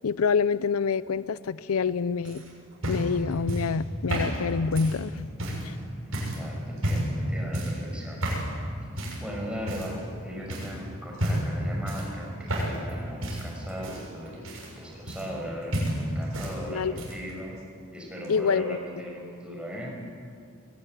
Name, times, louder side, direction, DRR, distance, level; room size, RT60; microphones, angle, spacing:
voice 1, 0.0-2.4 2.9-5.3 5.6-5.7 16.7-16.9 18.3-18.8, left 5 dB, 85° left, 17 dB, 0.5 m, -26 dB
sound 1, 2.2-5.7 6.1-6.4 6.8-7.2 7.5-7.8 8.2-8.5 9.0-9.3 9.7-10.2 10.5-10.7 11.1-11.6 11.9-12.9 13.2-15.5 15.7-16.5 16.8-17.3 18.2-18.3, right 1 dB, 70° right, 7.1 m, -30 dB
voice 2, 6.1-8.2 9.2-14.5 14.8-17.6 17.9-19.9, equal, 5° right, -1 dB, 5.7 m, -38 dB
22.0 x 17.5 x 9.4 m, 2.2 s
head